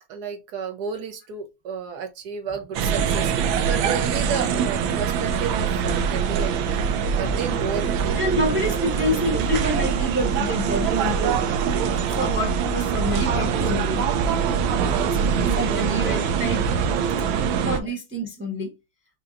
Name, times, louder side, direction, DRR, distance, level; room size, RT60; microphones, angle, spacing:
voice 1, 0.1-6.5 7.1-8.2 14.8-16.4 17.8-17.9, right 6 dB, 60° right, 1.2 m, -32 dB
sound 1, 2.7-17.8, right 7 dB, 80° right, 1.4 m, -23 dB
voice 2, 8.1-11.5 12.1-14.1 14.6-14.7 15.3-16.6 17.5-18.7, equal, 10° right, 0.5 m, -27 dB
5.7 x 2.8 x 2.5 m
omnidirectional pair, 2.1 m